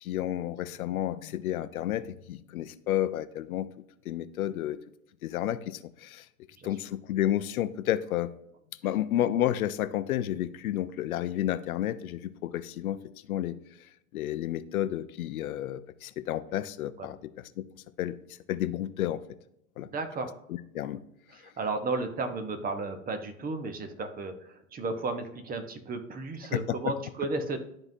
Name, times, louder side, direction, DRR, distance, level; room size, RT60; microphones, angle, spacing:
voice 1, 0.0-3.7 4.1-4.8 5.2-6.2 6.6-8.3 8.8-13.0 13.3-13.6 14.1-17.7 18.0-18.2 18.5-19.2 19.8-19.9 20.7-21.0 26.5-26.8, left 12 dB, 75° left, 13 dB, 0.7 m, -31 dB
voice 2, 19.9-20.3 21.3-27.6, right 3 dB, 20° right, 7 dB, 0.9 m, -34 dB
11.5 x 3.9 x 2.7 m, 0.77 s
hypercardioid pair, 105°, 43 cm